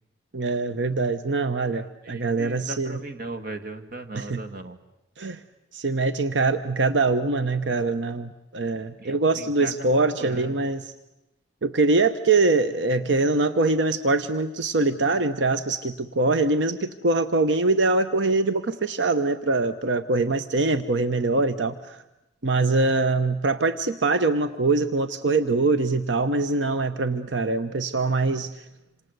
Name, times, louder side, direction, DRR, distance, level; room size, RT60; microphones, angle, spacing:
voice 1, 0.3-3.0 4.1-4.4 5.2-5.4 5.7-10.9 11.6-22.0 22.4-28.5, right 3 dB, 90° right, 11 dB, 1.0 m, -23 dB
voice 2, 1.4-4.8 9.0-10.7, right 2 dB, 55° right, 8 dB, 2.1 m, -38 dB
27.5 x 27.0 x 8.1 m, 0.90 s
head